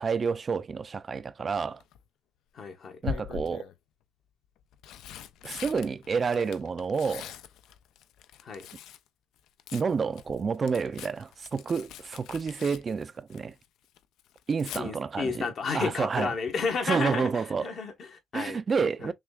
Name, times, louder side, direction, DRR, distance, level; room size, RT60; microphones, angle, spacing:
voice 1, 0.0-1.8 3.0-3.7 5.4-7.3 9.7-13.5 14.5-15.5 15.7-16.3 16.8-17.7 18.3-19.1, right 5 dB, 40° right, 0.3 m, -29 dB
Tearing, 1.5-2.0 3.0-3.8 4.6-9.1 9.4-13.7 14.0-14.8 16.7-17.0 17.3-17.4, left 9 dB, 85° left, 0.4 m, -42 dB
voice 2, 2.5-3.0 8.4-8.7 14.8-18.6 19.0-19.1, left 5 dB, 60° left, 1.1 m, -32 dB
6.0 x 2.3 x 2.3 m
cardioid pair, 90°, 0 cm